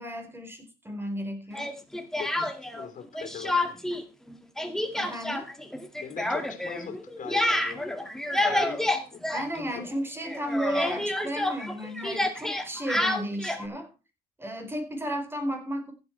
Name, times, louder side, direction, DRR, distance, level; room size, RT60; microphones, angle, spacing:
voice 1, 0.0-1.7 5.0-5.5 9.3-13.9 14.4-15.9, equal, 15° right, 5 dB, 4.3 m, -34 dB
Speech, 1.5-2.9 3.2-4.0 4.3-10.0 10.2-13.7, left 1 dB, 5° left, 2.0 m, -29 dB
voice 2, 2.2-3.8 6.0-7.9 8.4-8.8 9.1-9.8, left 7 dB, 50° left, 8 dB, 3.4 m, -41 dB
15.0 x 8.4 x 4.5 m, 0.30 s
cardioid pair, 110°, 17 cm